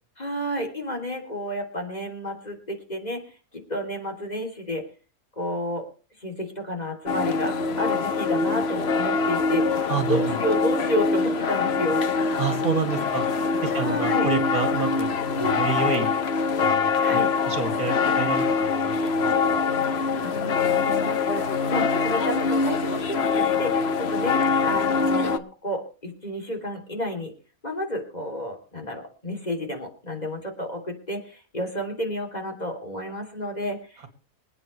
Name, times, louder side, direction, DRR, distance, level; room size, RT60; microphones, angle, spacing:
voice 1, 0.2-3.2 3.5-4.8 5.4-5.8 6.2-12.0 13.8-14.3 15.4-15.6 17.0-17.3 19.3-19.5 20.2-27.3 27.6-34.1, equal, 30° left, 3 dB, 3.3 m, -31 dB
sound 1, 7.1-25.4, left 4 dB, 50° left, 1.2 m, -24 dB
voice 2, 9.9-10.2 12.4-13.2 13.6-15.1 15.4-16.1 16.6-19.6, right 5 dB, 80° right, 6 dB, 3.0 m, -29 dB
26.5 x 9.0 x 3.3 m, 0.36 s
omnidirectional pair, 1.5 m